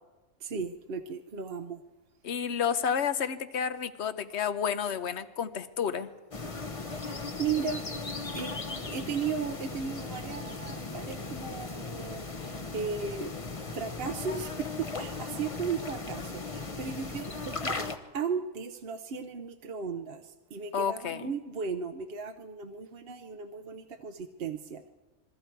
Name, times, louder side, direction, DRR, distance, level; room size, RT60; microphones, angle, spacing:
voice 1, 0.4-1.8 6.9-7.9 8.3-13.3 13.7-17.8 18.1-24.9, right 6 dB, 50° right, 6 dB, 0.9 m, -36 dB
voice 2, 2.2-6.1 20.7-21.3, left 7 dB, 55° left, 12 dB, 1.1 m, -30 dB
sound 1, 6.3-18.0, left 3 dB, 25° left, 1.0 m, -37 dB
27.0 x 22.5 x 4.6 m, 1.2 s
omnidirectional pair, 1.5 m